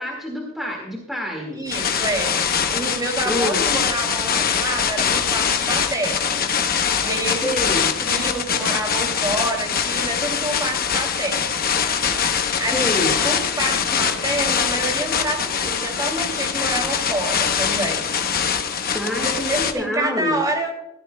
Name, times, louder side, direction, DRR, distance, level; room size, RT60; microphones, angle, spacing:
voice 1, 0.0-1.6 3.3-3.7 7.4-7.9 12.7-13.2 18.9-20.4, left 1 dB, ahead, -1 dB, 2.0 m, -26 dB
voice 2, 1.5-2.4 2.7-6.5 6.8-7.6 8.0-11.6 12.2-12.8 13.2-18.1 19.1-20.7, right 1 dB, 20° right, 3 dB, 2.6 m, -28 dB
sound 1, 1.7-19.7, left 7 dB, 45° left, 0.9 m, -23 dB
16.5 x 14.0 x 2.2 m, 0.92 s
head